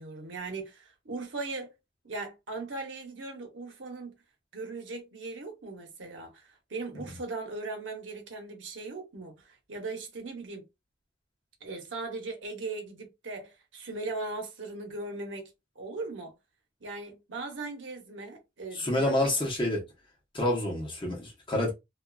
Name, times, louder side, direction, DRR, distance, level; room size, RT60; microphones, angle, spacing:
voice 1, 0.0-1.7 2.0-4.2 4.5-10.6 11.6-15.5 15.8-16.3 16.8-19.3 19.6-19.7, right 3 dB, 85° right, 0.9 m, -39 dB
voice 2, 18.7-19.8 20.3-21.7, left 1 dB, 25° left, 0.9 m, -28 dB
2.5 x 2.4 x 2.3 m
head